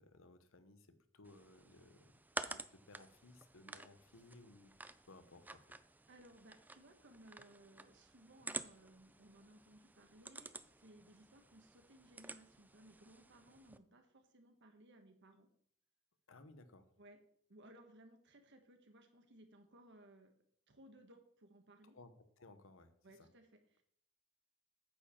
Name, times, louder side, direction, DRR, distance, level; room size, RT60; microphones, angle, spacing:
voice 1, 0.0-2.1 2.4-4.7 5.1-5.7 16.3-16.9 21.9-22.9 23.2-23.3, left 2 dB, 85° left, 11 dB, 1.0 m, -60 dB
sound 1, 1.2-13.8, right 3 dB, 10° right, 0.4 m, -51 dB
voice 2, 6.1-15.5 17.0-17.2 17.5-20.3 20.7-22.0 23.0-23.8, right 1 dB, 60° right, 6 dB, 1.6 m, -62 dB
9.2 x 4.9 x 7.1 m, 0.65 s
head